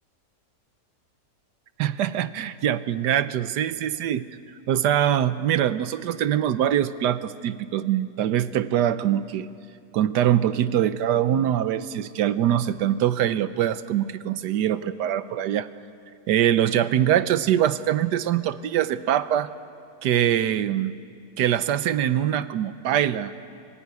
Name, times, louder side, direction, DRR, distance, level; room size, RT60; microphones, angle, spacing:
voice 1, 1.8-4.2 4.7-9.5 9.9-15.7 16.3-19.5 20.0-21.0 21.4-23.3, right 11 dB, 80° right, 13 dB, 1.4 m, -23 dB
26.5 x 17.5 x 9.5 m, 2.4 s
omnidirectional pair, 1.8 m